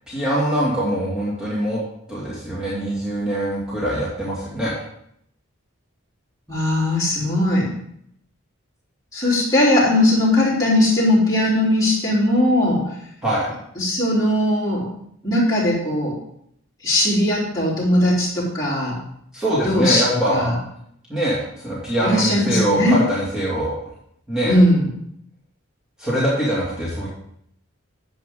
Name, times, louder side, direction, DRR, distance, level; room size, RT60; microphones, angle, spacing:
voice 1, 0.1-1.8 2.1-4.8 13.2-13.5 19.3-20.5 21.1-21.4 21.6-23.7 24.3-24.5 26.0-27.1, equal, 5° right, -9 dB, 2.4 m, -23 dB
voice 2, 6.5-7.7 9.1-12.8 13.8-14.8 15.2-16.1 16.8-19.0 19.6-20.0 20.3-20.5 22.0-23.0 24.4-24.8, left 1 dB, 15° left, -8 dB, 3.8 m, -19 dB
10.5 x 7.6 x 3.8 m, 0.71 s
head